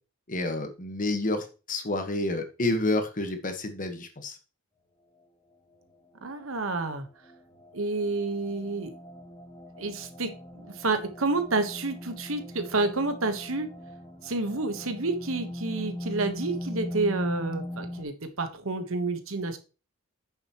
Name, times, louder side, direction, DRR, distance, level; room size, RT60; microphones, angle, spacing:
voice 1, 0.3-4.4, left 2 dB, 40° left, 7 dB, 1.3 m, -29 dB
sound 1, 5.7-18.0, left 1 dB, 20° left, 1.2 m, -40 dB
voice 2, 6.2-7.1 7.7-8.9 9.8-13.7 14.2-19.6, right 3 dB, 65° right, 8 dB, 1.2 m, -29 dB
8.8 x 6.9 x 3.0 m, 0.33 s
head